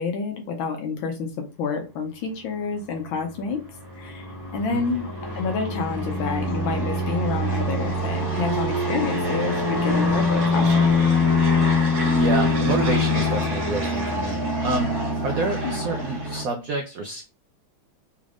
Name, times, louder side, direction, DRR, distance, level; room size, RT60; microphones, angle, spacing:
voice 1, 0.0-3.6 4.0-4.3 4.5-5.1 5.3-10.8 15.6-15.8, left 5 dB, 80° left, 4 dB, 1.5 m, -28 dB
sound 1, 3.1-16.4, left 2 dB, 50° right, 1.7 m, -24 dB
voice 2, 12.1-14.9 15.2-17.2, right 3 dB, 80° right, 3 dB, 0.8 m, -28 dB
4.1 x 3.3 x 2.4 m, 0.29 s
omnidirectional pair, 2.2 m